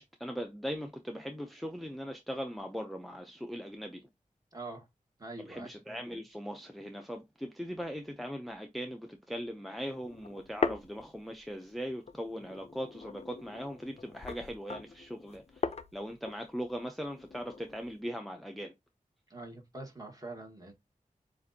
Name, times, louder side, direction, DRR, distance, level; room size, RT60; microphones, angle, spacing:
voice 1, 0.0-4.0 5.4-18.7, equal, ahead, 0.5 m, -40 dB
voice 2, 4.5-4.8 5.2-5.7 19.3-20.7, right 2 dB, 25° right, 1.5 m, -44 dB
sound 1, 9.9-11.7 12.1-18.0, left 4 dB, 50° left, 0.5 m, -40 dB
7.1 x 2.5 x 2.7 m
wide cardioid pair, 90°, 14 cm